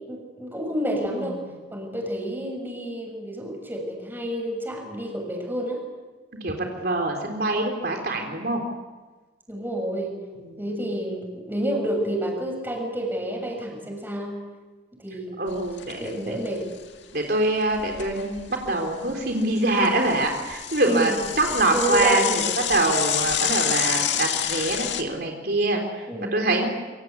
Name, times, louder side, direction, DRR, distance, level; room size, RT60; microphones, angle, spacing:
voice 1, 0.1-1.4 1.7-5.9 9.5-10.2 10.6-14.4 15.0-15.7 16.0-16.7 20.9-22.4 26.1-26.5, equal, 10° right, 1 dB, 7.0 m, -29 dB
voice 2, 1.2-1.6 6.4-8.6 10.4-10.6 15.4-16.4 17.1-21.1 21.4-26.7, right 2 dB, 60° right, 2 dB, 3.8 m, -24 dB
Bicycle / Mechanisms, 15.5-16.1 16.4-16.5 16.8-16.9 17.5-18.7 19.1-25.0, left 10 dB, 85° left, 2.0 m, -28 dB
27.0 x 25.0 x 8.3 m, 1.3 s
head